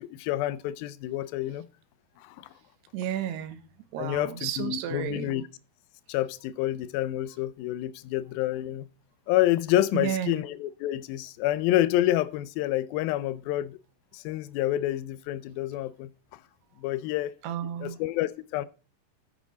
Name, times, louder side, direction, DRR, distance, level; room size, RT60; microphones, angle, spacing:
voice 1, 0.0-1.7 2.2-2.5 4.0-5.4 6.1-8.9 9.3-13.8 14.1-16.4 16.8-17.3 17.8-18.7, left 14 dB, 80° left, 2.3 m, -28 dB
voice 2, 2.9-3.6 3.9-5.4 9.9-10.4 17.4-18.0, right 10 dB, 85° right, 3.2 m, -32 dB
11.5 x 9.1 x 4.2 m
omnidirectional pair, 4.7 m